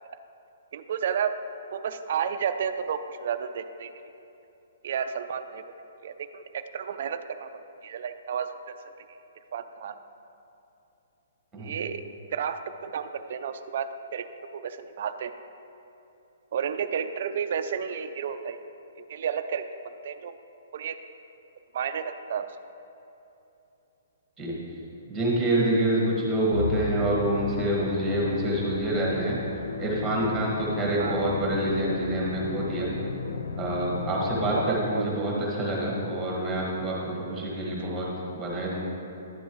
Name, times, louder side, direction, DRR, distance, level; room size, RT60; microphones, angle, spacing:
voice 1, 0.7-1.4 1.7-3.9 4.8-5.6 6.0-8.8 9.5-10.0 11.6-12.1 12.3-14.3 14.5-15.3 16.5-18.6 19.1-19.7 20.0-20.3 20.7-21.0 21.7-22.5 31.0-31.3 34.5-35.0 37.8-37.9, right 7 dB, 50° right, 9 dB, 0.4 m, -31 dB
voice 2, 25.1-29.4 29.8-32.9 33.6-38.8, right 1 dB, 5° right, -4 dB, 1.6 m, -27 dB
Musical instrument, 26.5-35.0, left 4 dB, 80° left, 0.6 m, -35 dB
10.5 x 7.0 x 3.1 m, 2.9 s
hypercardioid pair, 170°, 0 cm